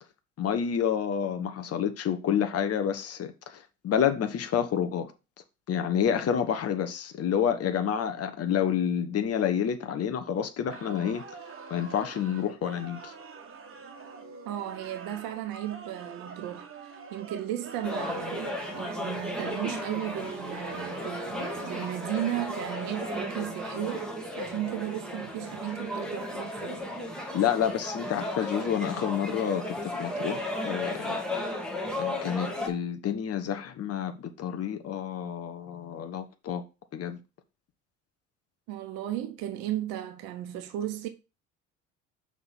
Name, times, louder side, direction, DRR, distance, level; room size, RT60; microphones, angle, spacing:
voice 1, 0.4-5.1 5.7-11.2 11.7-13.1 27.3-31.2 32.0-36.6 36.9-37.2, left 8 dB, 40° left, 1.1 m, -29 dB
sound 1, 10.7-23.3, right 5 dB, 35° right, 1.5 m, -45 dB
voice 2, 14.4-24.1 24.4-26.8 38.7-41.1, right 12 dB, 60° right, 1.0 m, -35 dB
sound 2, 17.8-32.7, left 1 dB, ahead, 1.9 m, -35 dB
5.8 x 3.7 x 5.9 m
hypercardioid pair, 60°, 39 cm